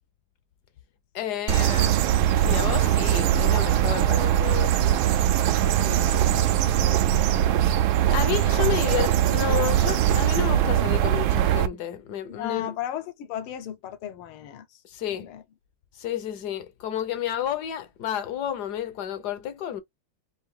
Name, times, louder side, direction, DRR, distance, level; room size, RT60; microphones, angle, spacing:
voice 1, 1.1-2.0 2.3-4.7 8.1-12.7 14.8-15.3 16.0-19.8, left 10 dB, 60° left, 1.1 m, -31 dB
sound 1, 1.5-11.7, right 11 dB, 75° right, 1.3 m, -21 dB
voice 2, 5.9-7.0 12.3-14.8 15.1-15.4, left 11 dB, 80° left, 1.7 m, -36 dB
5.0 x 2.6 x 3.6 m
omnidirectional pair, 2.3 m